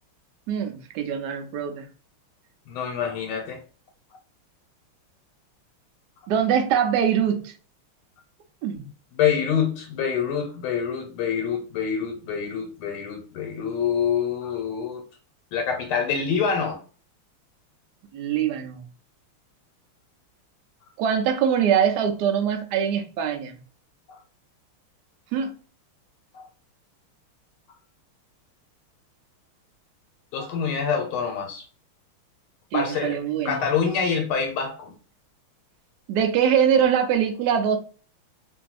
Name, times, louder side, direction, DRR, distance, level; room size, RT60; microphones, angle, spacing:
voice 1, 0.5-1.8 6.3-7.5 8.6-8.8 18.1-18.8 21.0-23.6 25.3-25.5 32.7-33.6 36.1-37.8, right 8 dB, 90° right, 0.9 m, -23 dB
voice 2, 2.7-3.6 9.1-15.0 15.5-16.8 24.1-24.2 26.3-26.4 30.3-31.6 32.7-33.2 33.4-34.9, left 7 dB, 85° left, 1.5 m, -26 dB
3.1 x 2.6 x 2.3 m
omnidirectional pair, 2.3 m